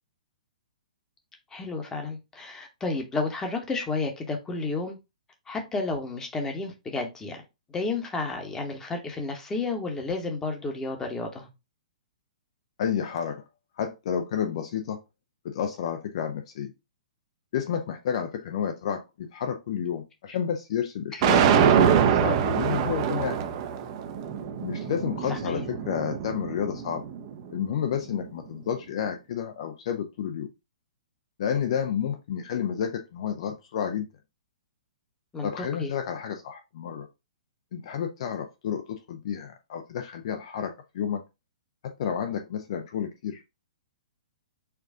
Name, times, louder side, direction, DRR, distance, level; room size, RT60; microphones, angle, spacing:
voice 1, 1.5-5.0 5.5-7.4 7.7-11.5 21.1-21.2 25.3-25.6 35.3-35.9, left 3 dB, 10° left, 0.9 m, -31 dB
voice 2, 12.8-13.4 13.8-15.0 15.4-16.7 17.5-23.4 24.6-27.0 27.5-30.5 31.4-34.1 35.4-37.1 37.7-41.2 42.0-43.4, left 8 dB, 45° left, 0.5 m, -30 dB
sound 1, 21.2-27.4, right 8 dB, 35° right, 0.5 m, -24 dB
4.6 x 2.4 x 3.6 m
figure-of-eight pair, 115°, 4 cm